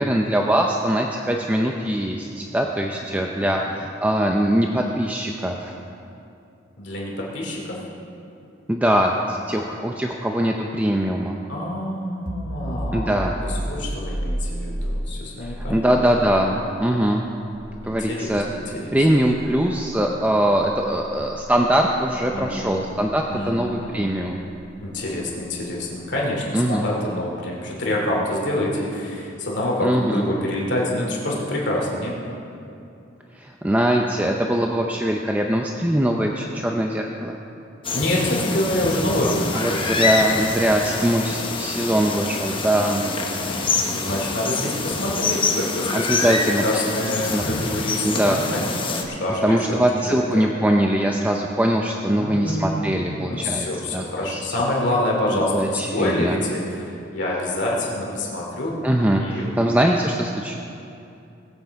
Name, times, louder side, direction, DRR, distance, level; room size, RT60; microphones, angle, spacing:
voice 1, 0.0-5.7 8.7-11.3 12.9-13.3 15.5-17.2 17.8-18.4 18.9-24.4 26.5-26.9 29.8-30.2 33.4-37.4 39.5-43.0 45.9-46.8 47.3-47.4 48.0-48.4 49.4-53.7 53.9-54.0 54.3-54.4 55.5-56.4 58.8-60.6, right 1 dB, 10° right, 1 dB, 0.5 m, -22 dB
voice 2, 2.9-3.6 6.8-7.9 11.5-16.0 17.8-19.0 22.3-22.8 23.3-24.1 24.8-32.1 37.9-39.9 42.7-50.4 52.1-58.8 59.1-59.7, left 1 dB, 60° left, -3 dB, 2.6 m, -27 dB
sound 1, 12.3-23.7, equal, 45° right, 1.3 m, -33 dB
sound 2, 37.8-49.0, left 4 dB, 25° left, 1.0 m, -26 dB
20.0 x 8.1 x 4.7 m, 2.7 s
head